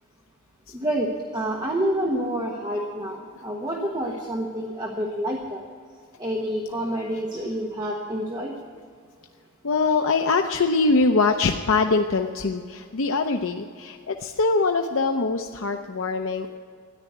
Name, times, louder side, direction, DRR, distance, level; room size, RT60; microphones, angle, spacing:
voice 1, 0.7-5.6 6.2-8.5, right 1 dB, 20° right, 0 dB, 1.2 m, -28 dB
voice 2, 9.6-16.6, left 3 dB, 65° left, 5 dB, 0.6 m, -23 dB
13.5 x 10.5 x 9.2 m, 2.1 s
head